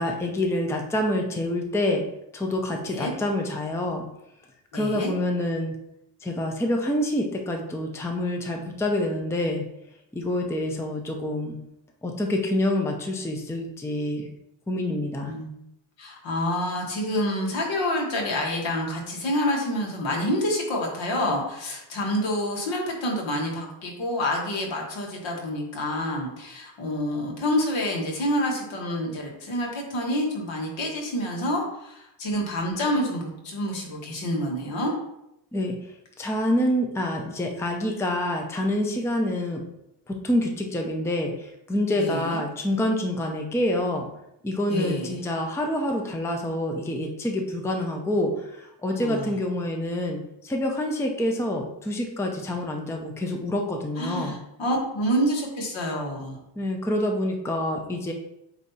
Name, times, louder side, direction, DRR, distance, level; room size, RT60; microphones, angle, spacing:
voice 1, 0.0-2.0 2.3-4.1 4.7-5.8 6.2-9.6 10.1-11.6 12.0-14.3 14.7-15.3 35.5-35.8 36.2-39.6 40.1-44.1 44.4-54.4 56.6-58.1, left 1 dB, 5° left, 2 dB, 0.6 m, -27 dB
voice 2, 2.7-3.1 4.7-5.1 15.2-15.5 16.0-34.9 42.0-42.4 44.7-45.2 49.0-49.3 54.0-56.4, equal, 70° left, -1 dB, 1.9 m, -28 dB
8.2 x 2.8 x 4.1 m, 0.83 s
cardioid pair, 135°, 47 cm